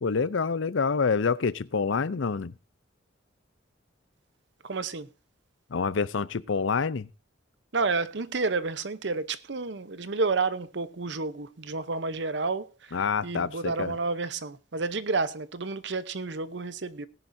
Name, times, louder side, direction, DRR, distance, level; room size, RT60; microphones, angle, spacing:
voice 1, 0.0-2.5 5.7-7.1 12.9-14.0, left 5 dB, 80° left, 0.6 m, -27 dB
voice 2, 4.6-5.1 7.7-17.1, right 3 dB, 65° right, 0.8 m, -30 dB
18.5 x 10.5 x 2.7 m
head